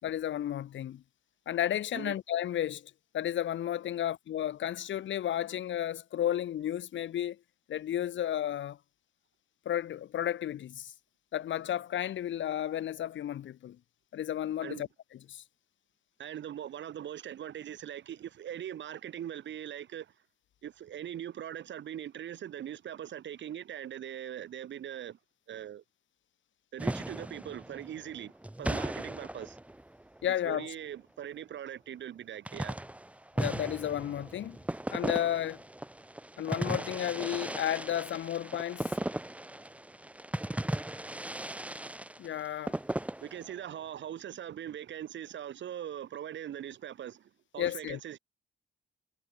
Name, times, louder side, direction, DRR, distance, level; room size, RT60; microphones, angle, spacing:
voice 1, 0.0-1.0 1.5-7.4 7.7-8.8 9.7-10.9 11.3-13.8 14.1-14.9 15.3-15.4 30.2-30.7 33.4-34.6 34.9-35.6 36.4-38.9 42.2-42.8 47.6-48.0, left 11 dB, 70° left, 6.9 m, -33 dB
voice 2, 16.2-20.1 20.6-25.2 25.5-25.8 26.7-28.3 28.6-29.6 30.4-32.8 43.2-48.2, right 10 dB, 65° right, 4.9 m, -41 dB
sound 1, 26.8-30.3 32.5-43.7, right 1 dB, 5° right, 1.4 m, -37 dB
cardioid pair, 90°, 20 cm